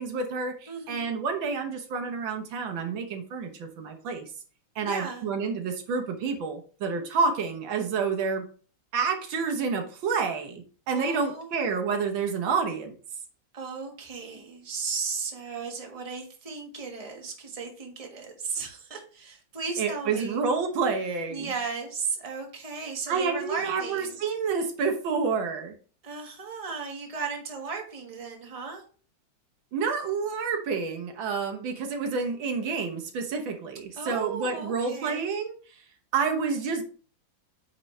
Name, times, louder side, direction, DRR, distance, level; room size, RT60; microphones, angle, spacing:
voice 1, 0.0-4.2 4.7-8.4 8.9-12.9 19.8-21.5 23.1-25.8 29.7-35.8 36.1-36.8, right 5 dB, 85° right, 4 dB, 1.8 m, -29 dB
voice 2, 0.7-1.1 4.8-5.3 10.9-11.5 13.5-20.4 21.3-24.2 26.0-28.8 33.9-35.3, right 5 dB, 20° right, 1 dB, 1.3 m, -35 dB
8.9 x 4.5 x 3.2 m, 0.40 s
omnidirectional pair, 2.0 m